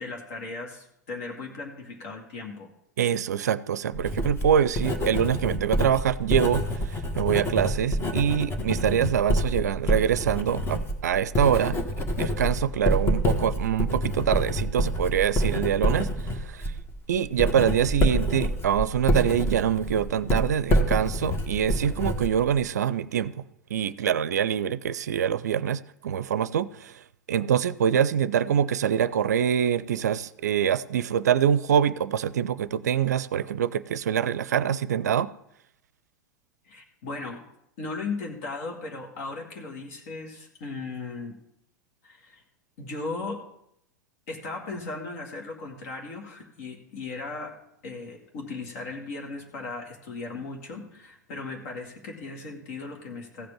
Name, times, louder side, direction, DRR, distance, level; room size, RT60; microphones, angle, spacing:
voice 1, 0.0-2.7 36.7-37.4 37.8-41.4 42.0-42.4 42.8-43.4 44.3-47.6 47.8-53.5, left 3 dB, 55° left, 2.0 m, -37 dB
voice 2, 3.0-11.8 12.2-16.7 17.1-23.4 23.7-26.9 27.3-35.3, right 9 dB, 65° right, 0.5 m, -25 dB
Writing, 3.9-22.7, equal, 25° left, 1.5 m, -27 dB
15.0 x 5.1 x 7.2 m
figure-of-eight pair, 85°, 9 cm